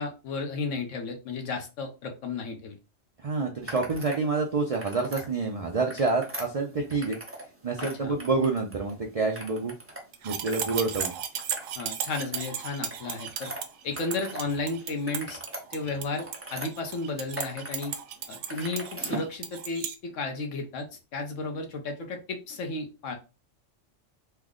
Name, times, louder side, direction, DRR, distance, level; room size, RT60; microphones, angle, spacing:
voice 1, 0.0-2.8 7.8-8.1 11.8-13.5 13.8-15.4 15.7-17.9 18.3-20.9 21.1-23.2, left 3 dB, 75° left, 4 dB, 1.1 m, -33 dB
voice 2, 3.2-7.2 7.6-9.7 10.2-11.1, right 3 dB, 65° right, 1 dB, 0.3 m, -28 dB
sound 1, 3.6-4.2 4.6-5.3 5.7-7.5 7.7-8.9 9.3-10.0 10.3-14.5 14.8-16.7 17.1-17.9 18.2-19.3, right 1 dB, 15° right, 0.6 m, -40 dB
sound 2, 10.1-19.9, right 9 dB, 85° right, 1.0 m, -35 dB
3.3 x 2.0 x 3.6 m, 0.30 s
omnidirectional pair, 1.3 m